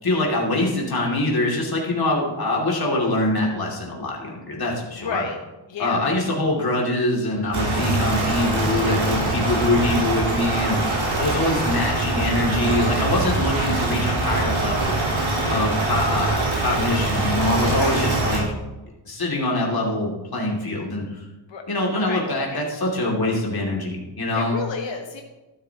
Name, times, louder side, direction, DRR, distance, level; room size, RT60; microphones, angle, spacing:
voice 1, 0.0-5.2 5.8-10.8 11.2-15.0 15.5-18.5 19.0-21.2 21.7-24.6, left 2 dB, 50° left, -2 dB, 2.7 m, -24 dB
voice 2, 5.0-5.4 5.7-6.0 17.7-17.9 21.5-21.6 22.1-22.2 22.5-22.6 24.3-25.2, left 5 dB, 70° left, 3 dB, 1.2 m, -31 dB
sound 1, 7.5-18.4, right 2 dB, 85° right, 4.3 m, -23 dB
13.0 x 12.0 x 2.9 m, 1.1 s
wide cardioid pair, 100°, 46 cm